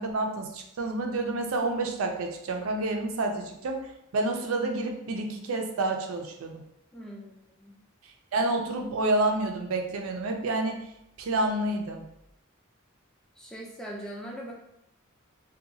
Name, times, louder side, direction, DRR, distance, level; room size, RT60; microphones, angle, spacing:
voice 1, 0.0-3.9 4.1-6.6 8.3-10.8 11.2-12.1, right 2 dB, 80° right, 3 dB, 0.4 m, -29 dB
voice 2, 6.9-7.3 7.6-7.8 13.4-14.5, right 1 dB, 5° left, -3 dB, 0.4 m, -40 dB
2.7 x 2.2 x 2.7 m, 0.78 s
head